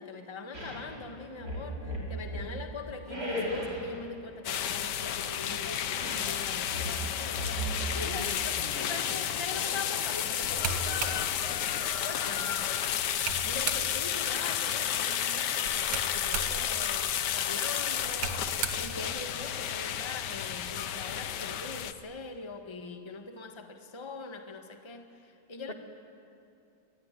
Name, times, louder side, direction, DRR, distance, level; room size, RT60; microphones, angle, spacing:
voice 1, 0.0-7.4 7.9-11.3 12.0-12.7 13.4-18.5 18.8-25.7, left 4 dB, 15° left, 6 dB, 1.3 m, -42 dB
sound 1, 0.5-0.9 1.4-2.6 3.1-3.9 5.8-6.3 6.7-8.2, equal, 50° right, 5.3 m, -36 dB
sound 2, 4.4-21.9, left 9 dB, 70° left, 1.5 m, -32 dB
voice 2, 7.9-8.9 25.7-25.8, left 1 dB, 35° left, 4 dB, 1.5 m, -42 dB
sound 3, 10.4-14.2 15.6-19.8, right 5 dB, 85° right, 2.2 m, -39 dB
25.5 x 20.0 x 10.0 m, 2.6 s
omnidirectional pair, 2.0 m